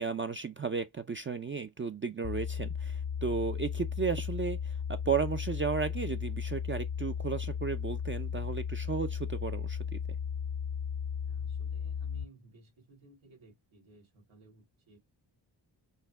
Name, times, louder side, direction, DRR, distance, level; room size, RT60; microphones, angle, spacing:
voice 1, 0.0-10.0, right 5 dB, 25° right, 0.4 m, -34 dB
sound 1, 2.2-12.3, left 7 dB, 40° left, 0.5 m, -35 dB
voice 2, 11.2-15.0, right 3 dB, 90° right, 2.8 m, -58 dB
5.5 x 2.2 x 3.5 m
cardioid pair, 90°, 46 cm